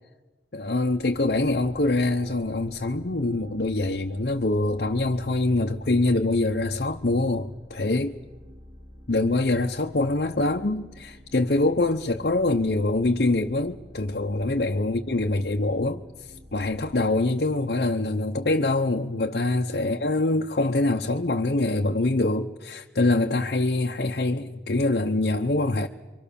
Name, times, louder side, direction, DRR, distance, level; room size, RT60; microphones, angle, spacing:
voice 1, 0.5-8.1 9.1-25.9, left 2 dB, 60° left, 0.8 m, -24 dB
sound 1, 0.6-17.1, equal, 80° right, 3.5 m, -49 dB
28.5 x 24.0 x 7.0 m
head